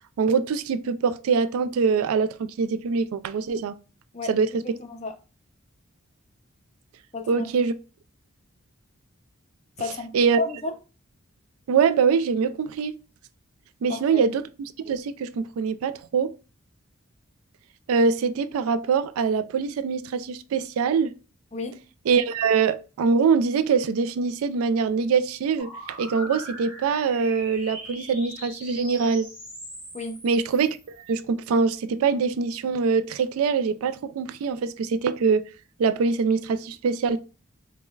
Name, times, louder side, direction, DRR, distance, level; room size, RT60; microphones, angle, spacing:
voice 1, 0.2-3.8 4.3-4.6 7.3-7.7 10.1-10.4 11.7-12.9 13.8-14.4 14.9-16.3 17.9-21.1 22.1-29.3 30.2-35.4 35.8-37.2, right 5 dB, 85° right, 0.3 m, -23 dB
voice 2, 4.6-5.1 7.1-7.4 9.8-10.1 10.4-10.7 13.9-14.2 21.5-21.8 29.9-30.2, left 3 dB, 30° left, 0.5 m, -32 dB
sound 1, 25.6-31.1, equal, 5° right, 1.1 m, -41 dB
5.1 x 2.1 x 2.3 m
head